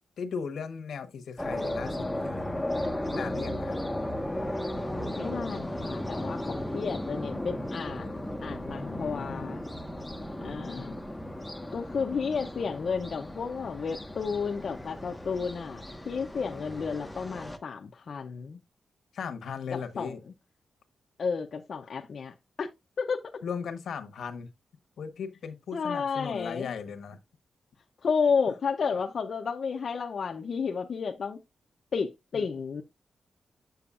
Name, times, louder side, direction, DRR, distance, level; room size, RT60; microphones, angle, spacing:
voice 1, 0.2-2.6 3.1-3.8 8.8-9.5 10.4-11.0 19.1-20.2 21.8-21.9 23.4-24.5 25.0-27.2 32.3-32.4, left 6 dB, 75° left, 1.0 m, -37 dB
sound 1, 1.4-17.6, left 1 dB, 5° left, 0.6 m, -35 dB
voice 2, 5.2-9.6 10.4-10.9 11.7-18.6 19.7-20.2 21.2-22.7 23.0-23.2 25.7-26.7 28.0-31.4 31.9-32.8, left 5 dB, 45° left, 0.5 m, -32 dB
7.8 x 6.9 x 2.4 m
wide cardioid pair, 175°, 0 cm